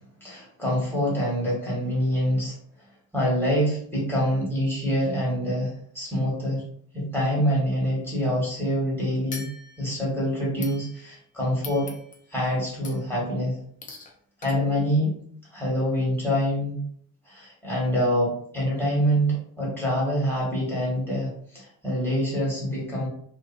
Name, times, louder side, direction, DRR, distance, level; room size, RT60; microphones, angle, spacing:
voice 1, 0.0-2.6 3.1-6.6 6.9-9.5 9.8-11.9 12.3-13.6 14.4-15.1 15.5-16.8 17.3-23.1, equal, 5° left, -6 dB, 1.3 m, -25 dB
sound 1, 9.3-10.1 10.6-11.2 11.6-12.3 12.8-13.2 13.8-14.1 14.4-14.5, left 4 dB, 25° left, 0.4 m, -42 dB
2.6 x 2.4 x 2.4 m, 0.62 s
cardioid pair, 135°, 34 cm